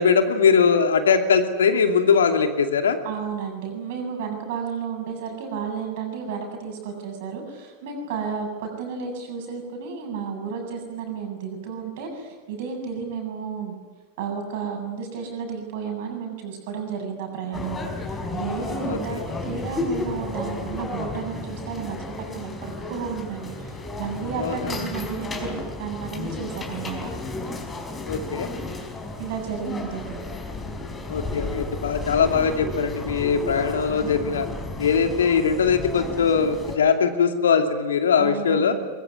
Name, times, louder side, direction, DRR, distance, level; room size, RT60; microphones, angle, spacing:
voice 1, 0.0-3.0 18.9-19.2 24.4-24.7 28.1-28.5 31.1-34.5 34.8-38.8, left 6 dB, 65° left, 6 dB, 2.7 m, -21 dB
voice 2, 3.0-13.8 14.2-22.0 22.3-27.0 29.2-30.2 38.2-38.8, right 6 dB, 50° right, 4 dB, 7.8 m, -32 dB
sound 1, 17.5-36.8, left 2 dB, 15° left, 4.7 m, -33 dB
23.5 x 23.0 x 9.6 m, 1.2 s
figure-of-eight pair, 90°, 0 cm